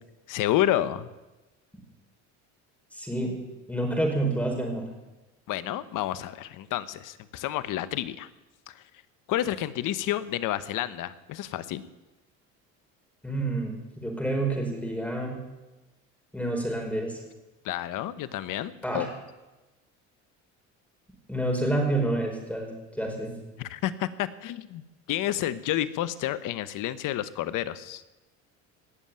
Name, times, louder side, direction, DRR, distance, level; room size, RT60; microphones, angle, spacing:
voice 1, 0.3-1.1 5.5-8.3 8.7-8.8 9.3-11.8 17.6-19.1 23.6-24.8 25.1-28.0, left 13 dB, 60° left, 14 dB, 1.1 m, -30 dB
voice 2, 2.9-3.4 3.7-4.8 13.2-15.4 16.3-17.2 18.8-19.1 21.3-22.7 22.9-23.3, right 2 dB, 5° left, 1 dB, 5.2 m, -28 dB
18.5 x 7.4 x 9.1 m, 1.1 s
supercardioid pair, 85°, 35 cm